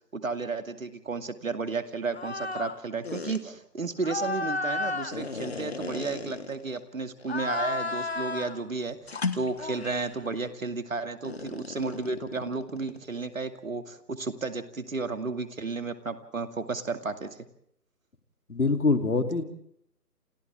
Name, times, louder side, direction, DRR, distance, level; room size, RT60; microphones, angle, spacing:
voice 1, 0.1-17.5, right 3 dB, 55° right, 8 dB, 2.5 m, -33 dB
sound 1, 2.1-2.8 3.0-3.4 4.0-6.8 7.2-8.6 9.1-10.2 11.2-13.0, left 3 dB, 40° left, 1.7 m, -33 dB
voice 2, 18.5-19.4, left 3 dB, 60° left, 6 dB, 3.5 m, -24 dB
28.5 x 28.0 x 3.6 m, 0.71 s
figure-of-eight pair, 155°, 49 cm